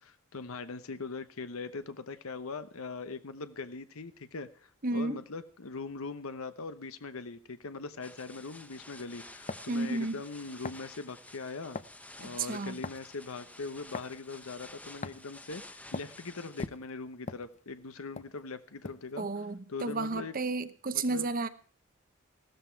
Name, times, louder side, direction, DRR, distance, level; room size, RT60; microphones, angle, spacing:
voice 1, 0.0-11.8 12.2-19.3 19.7-20.3 20.9-21.5, left 4 dB, 75° left, 11 dB, 0.9 m, -41 dB
voice 2, 4.8-5.2 9.7-10.2 12.2-12.8 19.2-21.5, right 3 dB, 40° right, 12 dB, 0.9 m, -32 dB
sound 1, 8.0-16.7, left 2 dB, 5° left, 0.8 m, -51 dB
sound 2, 9.5-9.7 10.6-10.9 11.7-12.0 12.8-13.1 13.9-14.1 15.0-15.3 15.9-16.1 16.6-17.8 18.2-18.3 18.8-19.1, left 3 dB, 35° left, 0.5 m, -40 dB
16.0 x 13.5 x 4.5 m, 0.42 s
head